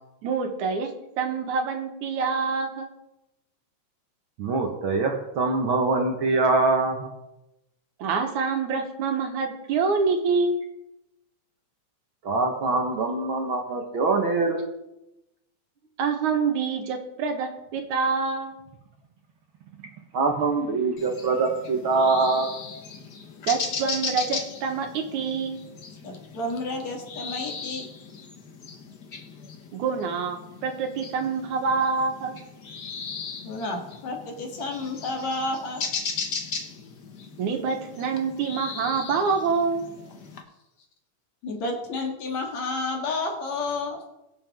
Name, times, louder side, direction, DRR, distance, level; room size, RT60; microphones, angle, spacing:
voice 1, 0.2-2.9 8.0-10.6 16.0-18.6 23.5-25.6 29.7-32.4 37.4-39.9, right 5 dB, 85° right, 4 dB, 2.8 m, -26 dB
voice 2, 4.4-7.1 12.2-14.6 20.1-22.5, right 3 dB, 55° right, 2 dB, 1.7 m, -23 dB
sound 1, 21.0-40.4, left 5 dB, 50° left, 1.3 m, -37 dB
voice 3, 26.0-27.9 33.4-35.8 41.4-44.0, left 2 dB, 65° left, 1 dB, 3.1 m, -31 dB
22.0 x 7.5 x 3.6 m, 0.93 s
omnidirectional pair, 3.4 m